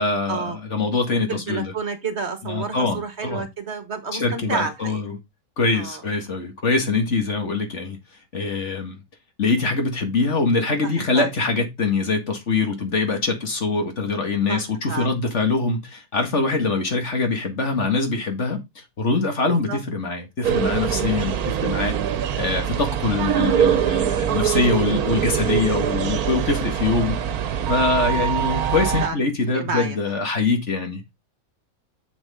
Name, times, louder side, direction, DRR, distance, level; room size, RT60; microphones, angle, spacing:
voice 1, 0.0-1.7 2.4-3.5 4.1-5.2 5.6-8.0 8.3-9.0 9.4-21.9 22.3-27.2 27.7-31.1, left 3 dB, 50° left, 2.2 m, -23 dB
voice 2, 1.3-5.0 5.7-6.0 10.8-11.3 14.5-14.6 14.9-15.1 19.7-19.8 22.5-22.7 25.8-25.9 28.1-28.3 29.0-29.2 29.5-30.0, right 4 dB, 50° right, 1.5 m, -30 dB
sound 1, 20.4-29.1, right 9 dB, 85° right, 1.3 m, -23 dB
7.2 x 6.2 x 3.6 m
omnidirectional pair, 1.5 m